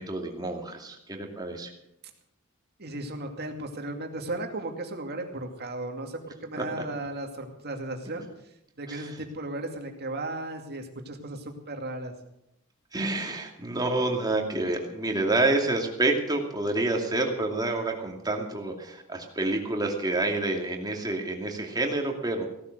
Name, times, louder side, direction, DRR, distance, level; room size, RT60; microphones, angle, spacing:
voice 1, 0.0-1.7 6.6-6.7 8.9-9.1 12.9-22.5, right 2 dB, 20° right, 2 dB, 2.5 m, -28 dB
voice 2, 2.8-8.3 8.8-12.1, right 2 dB, 45° right, 3 dB, 2.4 m, -35 dB
17.0 x 12.0 x 6.6 m, 0.81 s
head